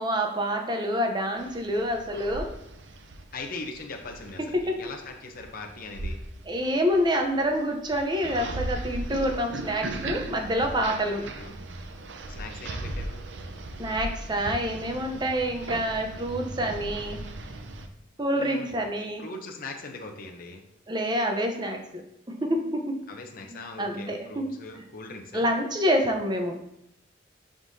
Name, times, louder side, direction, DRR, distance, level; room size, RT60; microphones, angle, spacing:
voice 1, 0.0-2.5 4.7-4.8 6.5-11.3 13.8-17.2 18.2-19.2 20.9-22.0 22.4-23.0 23.8-24.5 25.3-26.6, equal, 25° right, 3 dB, 0.7 m, -27 dB
sound 1, 1.4-17.9, right 2 dB, 75° right, 0.6 m, -38 dB
voice 2, 3.3-6.2 11.2-11.6 12.3-13.3 18.3-18.7 19.2-20.6 23.1-25.5, left 3 dB, 50° left, 2 dB, 0.7 m, -40 dB
11.0 x 3.7 x 2.7 m, 0.84 s
head